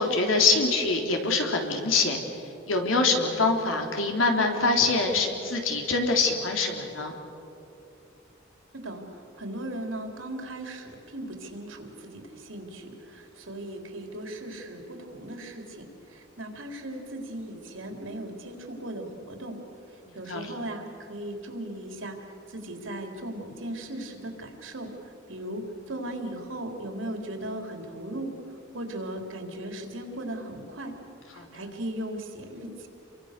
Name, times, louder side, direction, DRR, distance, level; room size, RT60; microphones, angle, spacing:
voice 1, 0.0-2.2 2.7-7.2 20.3-20.5 31.4-31.7, left 3 dB, 75° left, 2 dB, 3.5 m, -24 dB
voice 2, 8.7-19.6 20.1-28.3 28.7-30.9 31.3-32.9, right 1 dB, 75° right, 3 dB, 3.7 m, -37 dB
29.5 x 24.0 x 6.8 m, 2.9 s
head